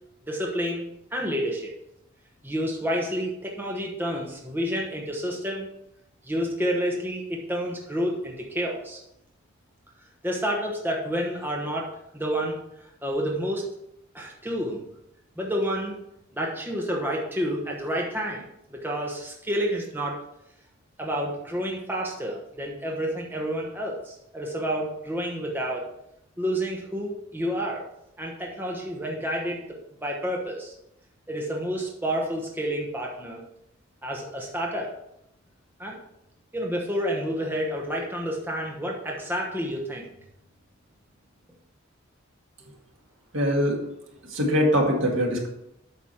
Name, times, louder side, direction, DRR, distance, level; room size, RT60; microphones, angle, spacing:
voice 1, 0.3-0.8 1.1-1.7 2.4-5.7 6.2-9.0 10.2-12.6 13.0-13.6 14.1-14.8 15.4-16.0 16.3-18.4 18.7-20.2 21.0-25.9 26.4-27.8 28.2-29.6 30.0-30.7 31.3-33.4 34.0-34.9 35.8-36.0 36.5-40.0, equal, 10° right, -1 dB, 1.1 m, -29 dB
voice 2, 43.3-43.8 44.3-45.5, equal, 70° right, 0 dB, 2.0 m, -22 dB
8.5 x 6.1 x 4.4 m, 0.80 s
head